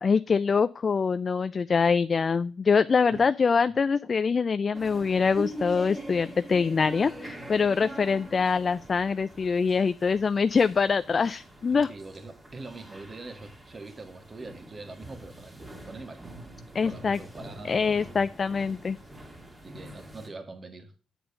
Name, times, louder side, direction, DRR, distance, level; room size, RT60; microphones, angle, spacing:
voice 1, 0.0-11.9 16.7-17.2 17.7-19.0, left 5 dB, 40° left, 13 dB, 0.3 m, -24 dB
sound 1, 4.7-20.3, right 1 dB, 15° right, 2.2 m, -44 dB
voice 2, 11.7-16.3 16.7-18.0 19.6-20.9, right 3 dB, 35° right, 6 dB, 1.6 m, -43 dB
8.4 x 4.4 x 6.8 m, 0.36 s
cardioid pair, 90°, 0 cm